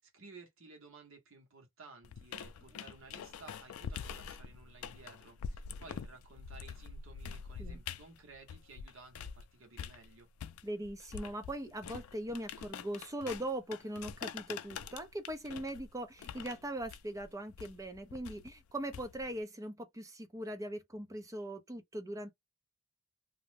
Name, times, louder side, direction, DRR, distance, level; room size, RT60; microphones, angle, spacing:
voice 1, 0.0-10.3, right 3 dB, 70° right, 1.0 m, -56 dB
sound 1, 2.0-9.4 9.8-19.4, left 7 dB, 85° left, 0.3 m, -45 dB
voice 2, 10.6-22.3, right 1 dB, 15° right, 0.4 m, -40 dB
2.5 x 2.0 x 3.2 m
head